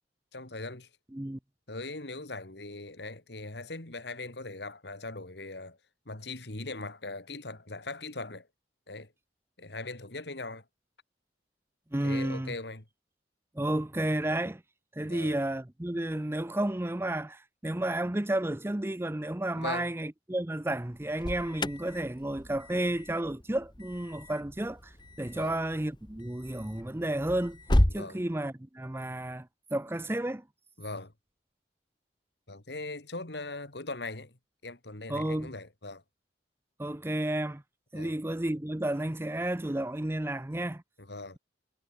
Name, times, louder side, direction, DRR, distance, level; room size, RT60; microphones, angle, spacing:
voice 1, 0.3-0.9 1.7-5.8 6.1-8.5 8.9-9.1 9.6-10.6 12.0-12.8 15.0-15.4 19.5-19.9 25.3-25.6 27.9-28.2 30.8-31.1 32.5-34.4 34.6-36.0 37.9-38.2 41.0-41.4, left 2 dB, 70° left, 2.6 m, -40 dB
voice 2, 11.9-12.5 13.5-14.6 14.9-27.6 27.9-30.4 35.1-35.5 36.8-37.6 37.9-40.8, right 1 dB, 15° right, 0.6 m, -32 dB
Alarm, 20.9-28.0, left 1 dB, 25° left, 1.5 m, -33 dB
head